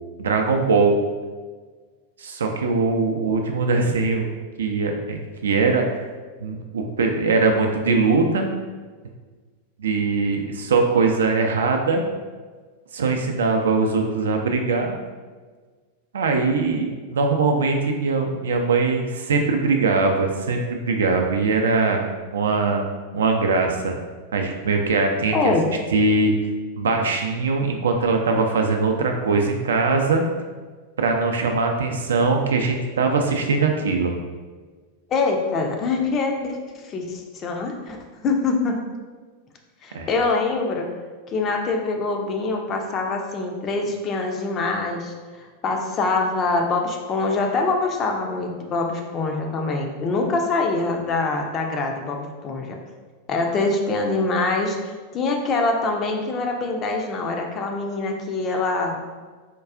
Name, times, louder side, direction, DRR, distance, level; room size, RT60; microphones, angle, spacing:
voice 1, 0.2-1.0 2.2-4.3 4.6-5.9 6.4-8.5 9.8-12.0 12.9-15.0 16.1-22.0 22.3-22.8 23.1-23.9 24.3-25.5 25.9-26.3 26.8-30.2 31.0-34.1 39.9-40.1, right 4 dB, 65° right, 3 dB, 0.4 m, -21 dB
voice 2, 25.3-25.6 35.1-38.0 38.2-38.8 39.8-40.9 41.3-52.8 53.3-59.0, left 3 dB, 30° left, 2 dB, 0.5 m, -24 dB
4.4 x 2.3 x 2.4 m, 1.4 s
figure-of-eight pair, 90°, 0 cm